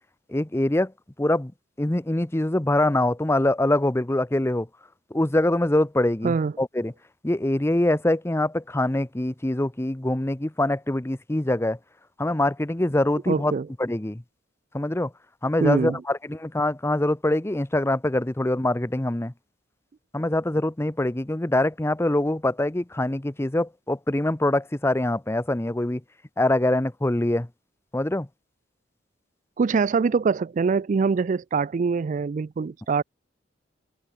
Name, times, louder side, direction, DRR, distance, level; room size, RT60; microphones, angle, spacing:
voice 1, 0.3-0.9 1.2-1.5 1.8-4.7 5.1-6.9 7.2-11.8 12.2-13.5 13.8-14.2 14.7-15.1 15.4-19.3 20.1-26.0 26.4-27.5 27.9-28.3, left 1 dB, 15° left, 0.7 m, -24 dB
voice 2, 13.3-13.7 15.6-16.0 29.6-33.0, right 5 dB, 45° right, 0.4 m, -23 dB
head